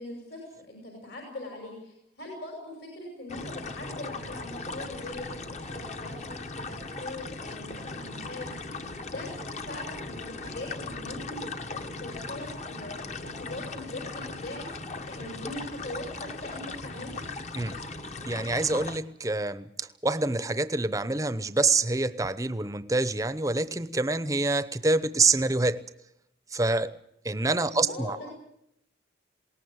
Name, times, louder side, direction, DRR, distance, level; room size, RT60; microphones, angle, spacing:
voice 1, 0.0-9.3 9.6-11.4 11.7-14.7 15.0-17.2 27.7-28.3, left 2 dB, 65° left, 5.8 m, -41 dB
sound 1, 3.3-19.0, left 3 dB, 35° left, 1.0 m, -38 dB
voice 2, 18.2-25.8 26.5-26.9 27.2-28.2, right 3 dB, 15° right, 0.7 m, -26 dB
21.0 x 18.5 x 8.1 m
head